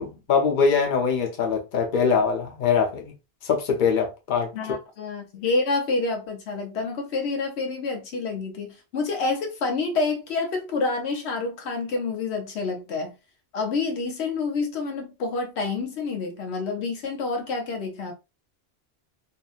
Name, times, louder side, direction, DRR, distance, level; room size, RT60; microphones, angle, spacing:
voice 1, 0.0-3.1 3.4-4.8, left 5 dB, 55° left, 0.8 m, -23 dB
voice 2, 4.5-13.1 13.5-18.1, left 3 dB, 90° left, 1.0 m, -28 dB
2.8 x 2.6 x 2.4 m
omnidirectional pair, 1.1 m